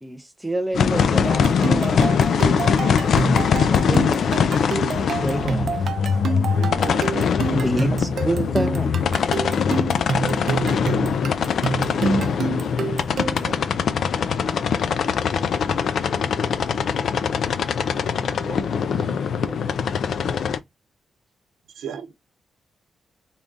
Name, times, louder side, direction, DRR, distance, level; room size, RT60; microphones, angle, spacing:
voice 1, 0.0-2.2 3.6-4.3 4.8-4.9 5.2-5.8 7.5-9.0, right 1 dB, 5° right, 0.4 m, -28 dB
sound 1, 0.7-20.6, left 6 dB, 60° left, 0.4 m, -22 dB
sound 2, 1.3-13.6, right 5 dB, 55° right, 0.5 m, -28 dB
voice 2, 6.5-7.7 10.1-10.9 21.7-22.1, right 7 dB, 80° right, 0.9 m, -34 dB
voice 3, 8.1-8.6 13.1-13.7 17.9-19.7, right 3 dB, 20° right, 0.9 m, -41 dB
3.5 x 2.4 x 3.8 m
wide cardioid pair, 170°, 0 cm